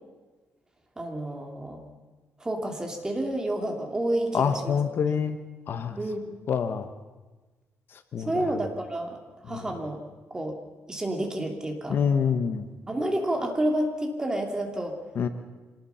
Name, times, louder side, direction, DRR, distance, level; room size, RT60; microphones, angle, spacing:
voice 1, 1.0-1.8 2.4-4.8 5.1-5.2 6.0-6.3 8.2-9.2 9.4-10.0 10.3-10.6 10.9-12.0 12.9-15.0, right 1 dB, 15° right, 3 dB, 2.7 m, -29 dB
voice 2, 4.3-5.4 5.7-6.0 6.5-6.9 8.1-8.3 11.9-12.6 15.2-15.3, left 7 dB, 50° left, 9 dB, 1.2 m, -26 dB
25.5 x 19.5 x 5.7 m, 1.3 s
cardioid pair, 155°, 5 cm